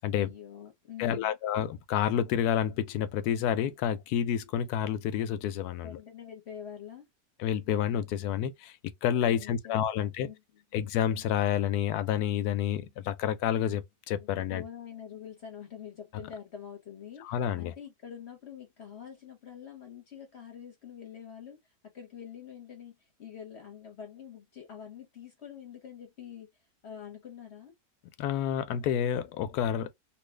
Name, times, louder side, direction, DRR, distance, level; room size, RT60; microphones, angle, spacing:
voice 1, 0.1-1.3 5.8-7.1 9.3-9.8 10.2-10.6 14.2-26.5 26.8-27.7, left 8 dB, 55° left, 0.9 m, -46 dB
voice 2, 1.0-6.0 7.4-10.3 10.7-14.6 17.2-17.7 28.2-29.9, left 9 dB, 90° left, 1.1 m, -29 dB
2.9 x 2.6 x 3.2 m
omnidirectional pair, 1.6 m